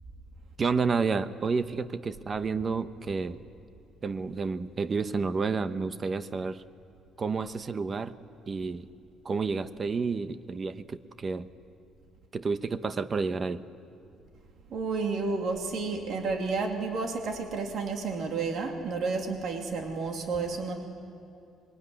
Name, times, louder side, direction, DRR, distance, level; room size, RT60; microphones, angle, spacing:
voice 1, 0.6-3.4 4.0-6.6 7.2-8.2 8.5-8.9 9.2-11.5 12.3-13.6, right 4 dB, 30° right, 12 dB, 0.9 m, -30 dB
voice 2, 14.7-20.7, right 4 dB, 55° right, 2 dB, 2.8 m, -31 dB
25.5 x 23.0 x 9.8 m, 2.6 s
cardioid pair, 155°, 0 cm